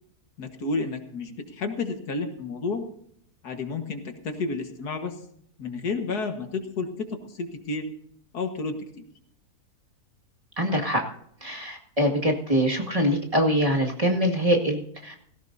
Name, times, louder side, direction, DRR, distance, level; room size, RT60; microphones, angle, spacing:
voice 1, 0.4-2.8 3.4-5.2 5.6-7.9 8.3-9.0, left 3 dB, 75° left, 6 dB, 2.0 m, -31 dB
voice 2, 10.6-11.0 11.4-15.3, equal, 20° right, 0 dB, 2.0 m, -24 dB
18.0 x 16.5 x 2.7 m, 0.68 s
omnidirectional pair, 1.7 m